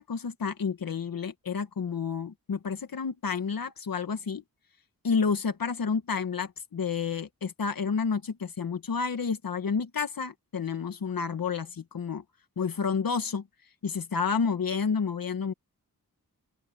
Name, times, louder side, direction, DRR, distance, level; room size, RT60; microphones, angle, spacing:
voice 1, 0.0-4.4 5.0-12.2 12.6-13.4 13.8-15.5, left 5 dB, 70° left, 1.6 m, -30 dB
open air
wide cardioid pair, 135°, 36 cm